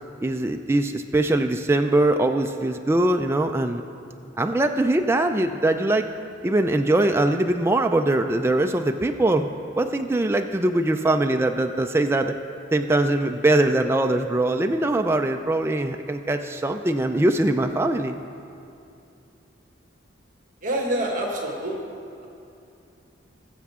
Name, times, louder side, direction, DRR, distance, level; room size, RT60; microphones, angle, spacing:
voice 1, 0.2-3.8 4.4-6.1 6.4-9.5 9.8-12.4 12.7-18.2, right 2 dB, 15° right, 5 dB, 0.3 m, -22 dB
voice 2, 20.6-21.9, right 1 dB, 45° right, -1 dB, 1.6 m, -26 dB
20.0 x 7.2 x 3.6 m, 2.6 s
head